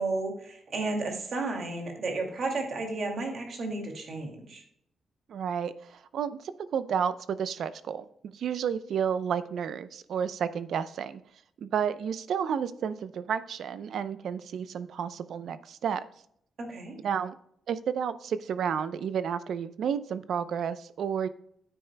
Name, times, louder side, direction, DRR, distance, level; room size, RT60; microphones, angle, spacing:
voice 1, 0.0-4.6 16.6-17.0, right 3 dB, 50° right, 2 dB, 2.2 m, -33 dB
voice 2, 5.3-8.1 8.3-11.2 11.6-16.0 17.0-17.3 17.7-21.3, right 7 dB, 65° right, 14 dB, 0.6 m, -31 dB
9.6 x 9.1 x 2.2 m, 0.70 s
wide cardioid pair, 150°, 0 cm